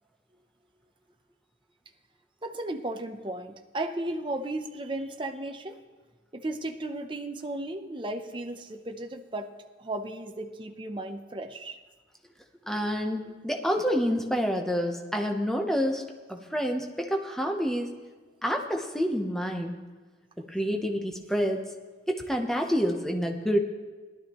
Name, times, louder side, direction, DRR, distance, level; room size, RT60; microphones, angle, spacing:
voice 1, 2.4-5.8 6.3-9.5 9.8-11.8, right 1 dB, 25° right, 6 dB, 0.6 m, -35 dB
voice 2, 12.7-16.0 16.3-17.9 18.4-19.8 20.4-21.6 22.3-23.6, equal, ahead, 2 dB, 0.8 m, -28 dB
18.0 x 12.0 x 3.0 m, 1.3 s
head